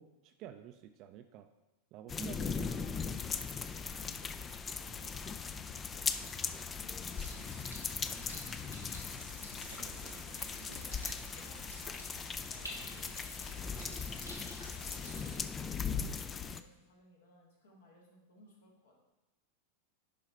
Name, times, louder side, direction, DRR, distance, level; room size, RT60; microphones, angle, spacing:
voice 1, 0.0-1.5 1.9-2.7 9.7-10.3, right 10 dB, 40° right, 7 dB, 0.5 m, -50 dB
sound 1, 2.1-16.6, left 6 dB, 20° left, 0.4 m, -39 dB
voice 2, 2.6-3.5 3.8-7.5 7.9-9.7 10.5-12.1 12.5-14.2 14.5-19.0, left 1 dB, 65° left, -1 dB, 2.1 m, -61 dB
sound 2, 7.1-15.4, equal, 85° left, 1.7 m, -50 dB
10.5 x 4.9 x 4.3 m, 1.0 s
figure-of-eight pair, 90°, 0 cm